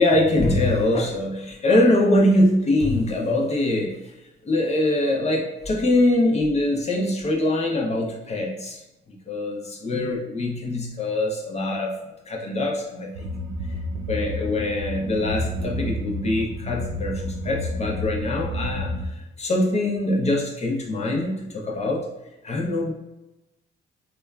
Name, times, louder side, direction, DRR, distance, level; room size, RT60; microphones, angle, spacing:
voice 1, 0.0-4.0 4.4-8.8 9.3-11.9 12.3-13.3 14.1-22.1 22.4-22.9, left 1 dB, 35° left, -2 dB, 0.5 m, -23 dB
sound 1, 13.1-19.1, left 1 dB, 75° right, 0.5 m, -30 dB
2.9 x 2.2 x 2.2 m, 0.97 s
cardioid pair, 90°, 20 cm